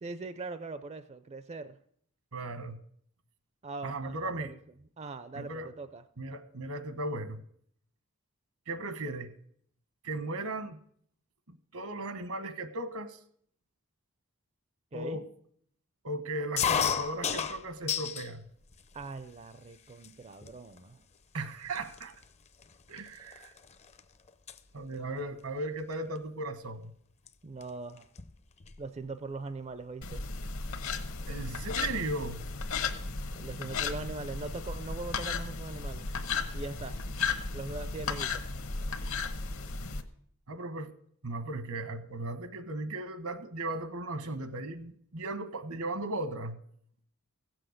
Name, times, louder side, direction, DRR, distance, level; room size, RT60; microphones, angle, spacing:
voice 1, 0.0-1.8 3.6-4.5 5.0-6.0 14.9-15.2 18.9-21.0 27.4-28.1 28.8-30.2 33.3-36.1 36.5-37.0 37.5-38.4, right 3 dB, 30° right, 11 dB, 0.4 m, -41 dB
voice 2, 2.3-2.8 3.8-4.5 5.3-5.7 6.2-7.4 8.7-9.3 10.0-10.8 11.5-13.2 14.9-15.3 16.0-18.4 21.3-22.1 22.9-23.5 24.7-26.9 31.3-32.4 40.5-40.9 41.2-46.6, right 2 dB, 75° right, 10 dB, 1.2 m, -36 dB
sound 1, 16.6-18.3 18.7-19.4 20.0-20.1 20.4-20.8 21.4-21.5 21.7-24.0 24.3-24.6 25.9-26.2 27.3-27.4 27.6-27.7 28.0-28.9, left 7 dB, 30° left, 0.5 m, -33 dB
sound 2, 30.0-40.0, left 4 dB, 65° left, 1.1 m, -35 dB
16.0 x 7.8 x 6.5 m, 0.65 s
head